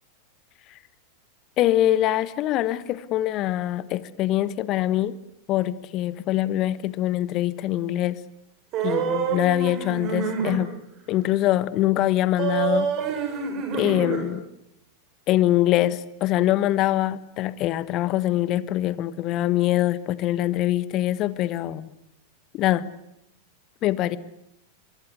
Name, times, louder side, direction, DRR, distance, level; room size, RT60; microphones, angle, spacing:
voice 1, 1.6-5.2 5.5-8.2 8.8-10.7 11.1-12.9 13.7-14.4 15.3-21.9 22.5-22.9 23.8-24.2, left 14 dB, 35° left, 18 dB, 1.4 m, -24 dB
sound 1, 8.7-10.6 12.4-14.3, right 6 dB, 35° right, 7.7 m, -26 dB
24.5 x 22.5 x 9.6 m, 0.79 s
figure-of-eight pair, 90°, 0 cm